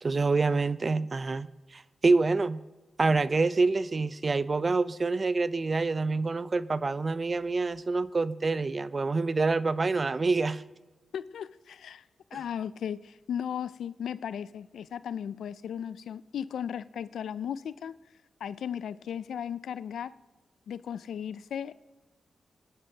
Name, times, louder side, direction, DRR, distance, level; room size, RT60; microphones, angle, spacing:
voice 1, 0.0-2.6 3.0-10.6, right 3 dB, 45° right, 0.5 m, -27 dB
voice 2, 11.1-12.0 12.3-18.0 18.4-20.2 20.7-21.7, left 8 dB, 85° left, 0.3 m, -36 dB
21.0 x 11.0 x 2.8 m
cardioid pair, 50°, 0 cm